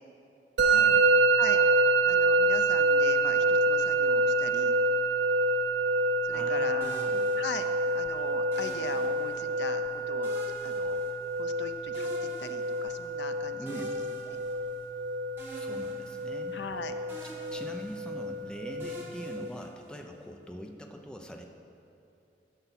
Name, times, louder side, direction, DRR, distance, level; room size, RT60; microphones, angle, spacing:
voice 1, 0.6-1.1 6.3-7.2 13.5-13.9 15.5-16.6 17.2-21.4, equal, 5° left, 2 dB, 0.5 m, -43 dB
Musical instrument, 0.6-19.5, right 2 dB, 80° right, 0.5 m, -27 dB
voice 2, 2.1-4.7 6.2-7.0 7.4-7.7 7.9-10.4 10.6-11.0 11.4-13.8 14.3-14.4 16.5-16.9, left 4 dB, 75° left, 8 dB, 0.5 m, -39 dB
sound 1, 6.8-8.0 8.5-9.7 10.2-11.6 11.9-13.1 13.7-15.0 15.4-16.8 17.1-18.3 18.8-20.2, right 1 dB, 10° right, 1.6 m, -48 dB
12.0 x 5.7 x 5.9 m, 2.7 s
head